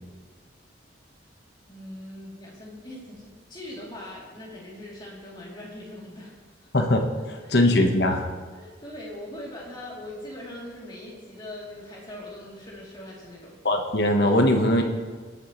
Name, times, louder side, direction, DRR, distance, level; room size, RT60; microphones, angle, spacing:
voice 1, 1.7-6.3 7.4-7.6 8.5-13.6, left 1 dB, 25° left, -5 dB, 3.0 m, -41 dB
voice 2, 7.5-8.3 13.6-14.8, left 1 dB, 60° left, 3 dB, 1.1 m, -20 dB
18.5 x 8.9 x 3.1 m, 1.5 s
head